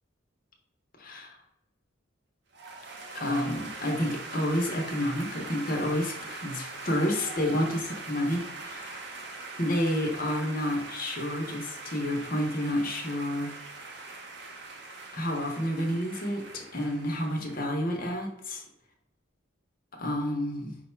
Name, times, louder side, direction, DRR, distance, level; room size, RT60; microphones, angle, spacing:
voice 1, 1.0-1.4 3.1-9.0 9.6-13.6 15.1-18.6 19.9-20.8, left 1 dB, 45° left, 1 dB, 0.8 m, -30 dB
sound 1, 2.5-18.1, right 3 dB, 55° right, 0.6 m, -42 dB
4.9 x 2.2 x 4.3 m, 0.83 s
head